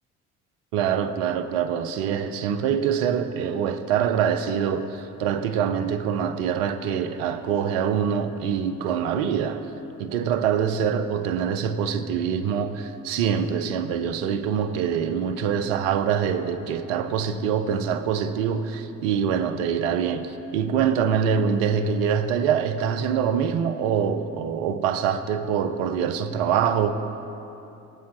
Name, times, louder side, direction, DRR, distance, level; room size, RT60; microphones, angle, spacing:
voice 1, 0.7-9.7 10.0-26.9, right 7 dB, 70° right, 0.8 m, -24 dB
21.0 x 8.3 x 3.0 m
hypercardioid pair, 55°, 38 cm